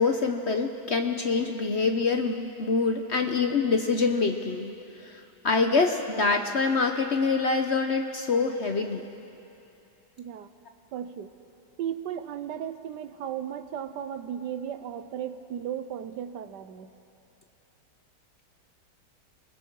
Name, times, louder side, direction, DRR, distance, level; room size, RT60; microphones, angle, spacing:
voice 1, 0.0-4.7 5.0-9.0, left 4 dB, 50° left, 5 dB, 0.9 m, -25 dB
voice 2, 10.2-10.5 10.9-11.3 11.8-16.9, right 9 dB, 80° right, 11 dB, 1.4 m, -35 dB
28.5 x 20.0 x 4.6 m, 2.8 s
omnidirectional pair, 1.9 m